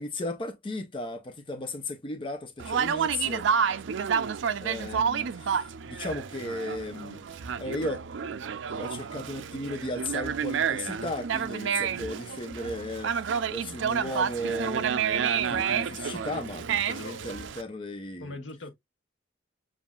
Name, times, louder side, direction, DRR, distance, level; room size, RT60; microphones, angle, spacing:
voice 1, 0.0-3.5 4.6-7.2 7.6-8.0 8.7-13.2 13.5-18.3, left 1 dB, 25° left, 0.6 m, -35 dB
Conversation, 2.6-17.6, right 7 dB, 75° right, 0.4 m, -30 dB
voice 2, 16.9-17.4 18.2-18.7, left 2 dB, 80° left, 1.1 m, -42 dB
7.1 x 2.5 x 2.3 m
head